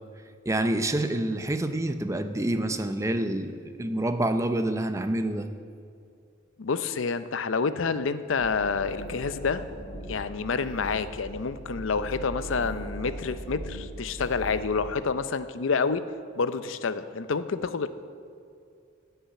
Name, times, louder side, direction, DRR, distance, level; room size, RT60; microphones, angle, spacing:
voice 1, 0.5-5.5, right 1 dB, 15° right, 9 dB, 0.5 m, -27 dB
voice 2, 6.6-9.6 10.0-16.0 16.4-17.9, left 5 dB, 70° left, 12 dB, 0.6 m, -28 dB
sound 1, 8.4-14.9, right 1 dB, 35° left, 2.7 m, -39 dB
15.5 x 5.7 x 8.8 m, 2.4 s
head